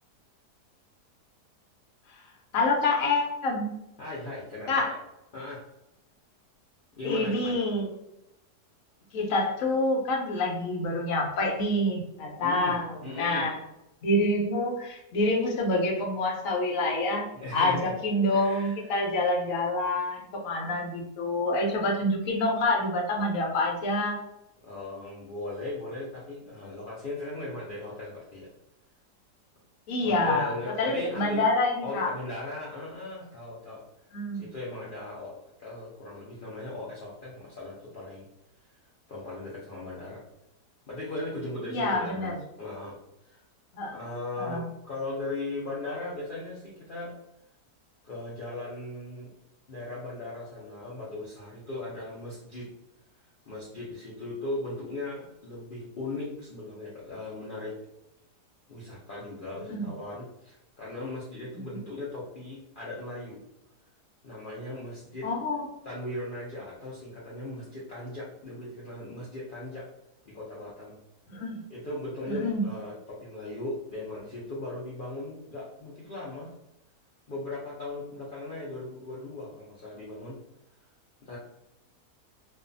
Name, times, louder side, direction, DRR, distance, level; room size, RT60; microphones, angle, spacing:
voice 1, 2.5-3.7 4.7-4.9 7.0-7.9 9.1-12.9 13.2-13.6 14.0-24.2 29.9-30.5 30.8-32.1 34.1-34.5 41.7-42.3 43.7-43.9 44.4-44.6 59.7-59.8 61.7-61.8 65.2-65.6 71.3-71.6 72.3-72.6, left 2 dB, 65° left, 0 dB, 0.9 m, -27 dB
voice 2, 4.0-4.9 5.3-5.7 7.0-7.6 12.4-13.5 17.3-17.9 18.3-18.9 24.6-28.5 30.0-31.5 31.8-33.8 34.3-38.3 39.1-40.2 40.9-43.4 43.9-47.2 48.0-49.3 49.7-52.7 53.5-57.8 58.7-63.4 64.2-65.3 65.8-69.9 70.3-71.0 71.7-76.5 77.3-80.4 81.2-81.4, left 2 dB, 85° left, -6 dB, 0.4 m, -38 dB
2.6 x 2.3 x 2.5 m, 0.89 s
omnidirectional pair, 1.7 m